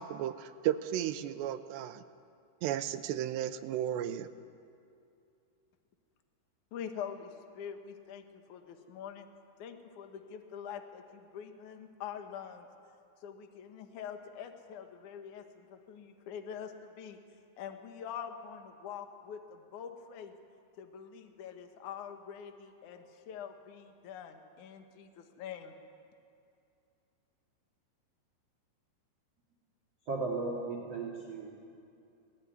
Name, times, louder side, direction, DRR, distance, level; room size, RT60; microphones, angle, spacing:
voice 1, 0.0-2.0 2.6-4.3, right 11 dB, 80° right, 9 dB, 2.8 m, -34 dB
voice 2, 6.7-9.3 9.6-12.7 13.2-17.2 17.6-20.3 20.8-25.7, left 8 dB, 55° left, 5 dB, 2.3 m, -45 dB
voice 3, 30.1-31.7, right 3 dB, 40° right, -1 dB, 3.1 m, -36 dB
23.5 x 18.5 x 9.5 m, 2.5 s
omnidirectional pair, 5.4 m